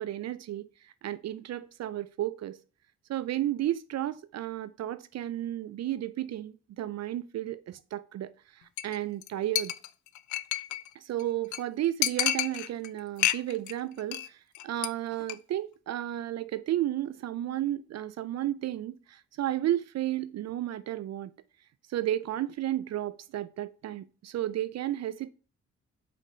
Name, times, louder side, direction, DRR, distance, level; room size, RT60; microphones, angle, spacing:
voice 1, 0.0-2.6 3.1-9.7 10.9-21.3 21.9-25.3, right 13 dB, 60° right, 0.4 m, -33 dB
Chink clink, 8.8-9.0 9.2-9.3 9.6-10.9 11.2-11.3 11.5-11.6 12.0-12.9 13.2-13.7 14.0-14.3 14.5-14.9 15.2-15.3, left 13 dB, 80° left, 0.5 m, -29 dB
4.9 x 4.1 x 5.5 m
supercardioid pair, 50°, 29 cm